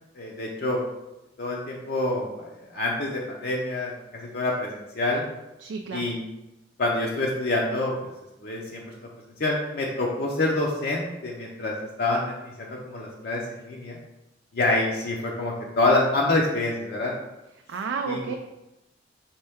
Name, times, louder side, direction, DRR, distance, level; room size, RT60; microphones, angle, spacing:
voice 1, 0.1-0.8 1.4-5.2 5.9-6.2 6.8-8.1 8.4-8.8 9.4-14.0 14.5-17.1 18.1-18.2, left 2 dB, 55° left, -2 dB, 0.6 m, -27 dB
voice 2, 5.6-6.1 17.7-18.4, right 5 dB, 85° right, 4 dB, 0.3 m, -31 dB
4.3 x 3.1 x 3.5 m, 0.97 s
head